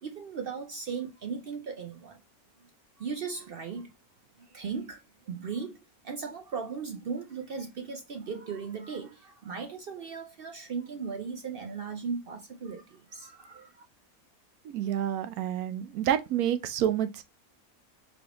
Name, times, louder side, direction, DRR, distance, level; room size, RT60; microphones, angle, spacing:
voice 1, 0.0-2.2 3.0-3.9 4.4-5.0 5.3-5.8 6.0-13.8, right 5 dB, 60° right, 0.6 m, -37 dB
voice 2, 14.7-17.2, right 10 dB, 85° right, 1.1 m, -28 dB
4.2 x 3.3 x 2.8 m
omnidirectional pair, 1.5 m